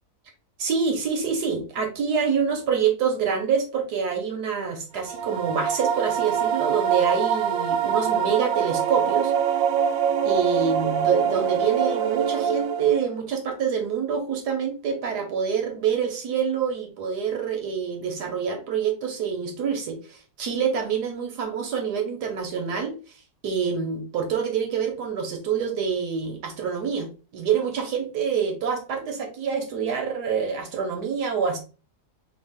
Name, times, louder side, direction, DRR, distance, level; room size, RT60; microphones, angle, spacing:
voice 1, 0.6-9.3 10.2-23.0 23.4-31.6, right 6 dB, 85° right, 3 dB, 1.5 m, -26 dB
sound 1, 5.0-13.2, right 8 dB, 70° right, 0.9 m, -24 dB
4.0 x 2.4 x 3.5 m, 0.35 s
omnidirectional pair, 1.7 m